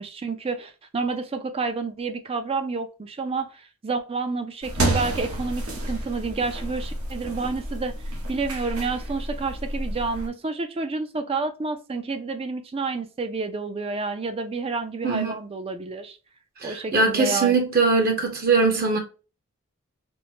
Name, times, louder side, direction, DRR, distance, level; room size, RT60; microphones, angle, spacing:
voice 1, 0.0-7.9 8.3-16.2 16.6-17.6, right 4 dB, 25° right, 0.4 m, -29 dB
sound 1, 4.6-10.3, right 1 dB, 80° right, 1.1 m, -30 dB
voice 2, 16.6-19.0, right 4 dB, 45° right, 0.8 m, -21 dB
4.4 x 2.1 x 2.7 m
head